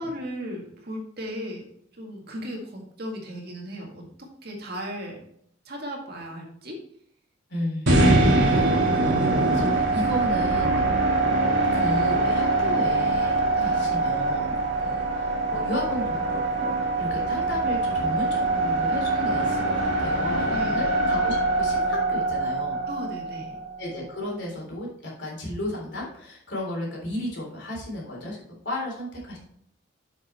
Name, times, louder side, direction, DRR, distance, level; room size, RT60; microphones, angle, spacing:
voice 1, 0.0-1.6 2.0-4.0 4.4-5.2 5.7-6.8 13.6-14.0 20.5-20.9 22.9-23.6, equal, 50° right, 0 dB, 2.0 m, -36 dB
voice 2, 7.5-11.3 11.7-22.8 23.8-29.4, left 1 dB, 60° left, -2 dB, 3.5 m, -34 dB
sound 1, 7.9-24.0, right 2 dB, 70° right, 2.1 m, -23 dB
7.7 x 6.5 x 4.3 m, 0.68 s
head